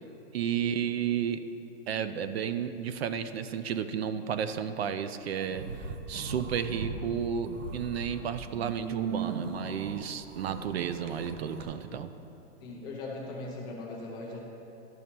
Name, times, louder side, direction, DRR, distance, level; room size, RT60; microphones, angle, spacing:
voice 1, 0.3-1.4 1.9-12.1, right 8 dB, 60° right, 11 dB, 0.5 m, -32 dB
sound 1, 5.4-7.0 7.4-11.6, right 5 dB, 85° right, 1.1 m, -38 dB
voice 2, 12.6-14.4, left 2 dB, 10° left, -3 dB, 0.5 m, -39 dB
12.5 x 4.1 x 5.9 m, 2.9 s
hypercardioid pair, 170°, 36 cm